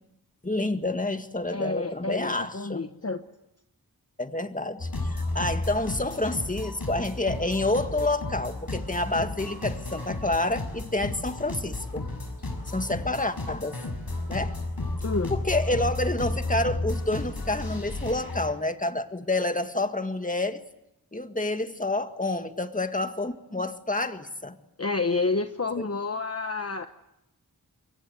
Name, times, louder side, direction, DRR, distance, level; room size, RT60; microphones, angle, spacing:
voice 1, 0.4-2.8 4.2-12.1 12.7-13.8 14.3-14.6 15.3-20.6 21.1-24.6 25.8-25.9, left 2 dB, 20° left, 8 dB, 1.8 m, -28 dB
voice 2, 1.5-3.3 15.0-15.4 24.8-26.9, left 3 dB, 40° left, 7 dB, 1.1 m, -29 dB
sound 1, 4.8-18.5, left 2 dB, 75° left, 5.9 m, -33 dB
28.5 x 23.5 x 8.1 m, 0.89 s
wide cardioid pair, 60°, 36 cm